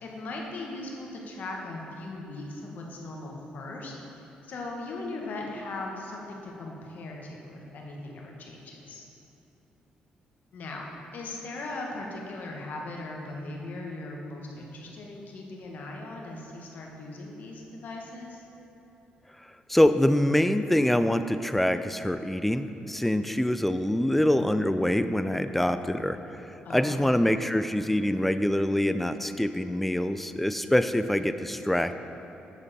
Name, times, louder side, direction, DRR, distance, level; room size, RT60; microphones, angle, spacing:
voice 1, 0.0-9.0 10.5-10.9 11.1-18.4 26.6-27.1, left 2 dB, 65° left, -1 dB, 1.3 m, -39 dB
voice 2, 19.7-26.2 26.7-31.9, left 1 dB, 5° left, 10 dB, 0.4 m, -25 dB
8.1 x 6.8 x 4.2 m, 3.0 s
cardioid pair, 80°, 3 cm